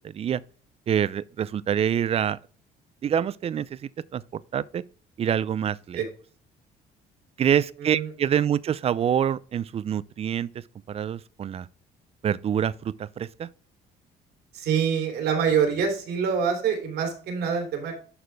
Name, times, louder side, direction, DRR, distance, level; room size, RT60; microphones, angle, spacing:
voice 1, 0.9-2.4 3.0-3.8 4.1-4.2 4.5-4.8 5.2-6.0 7.4-10.5 10.9-11.7 12.2-13.5, right 9 dB, 35° right, 0.4 m, -26 dB
voice 2, 7.8-8.1 14.5-17.9, right 7 dB, 80° right, 3.0 m, -25 dB
11.0 x 4.2 x 3.3 m
cardioid pair, 110°, 17 cm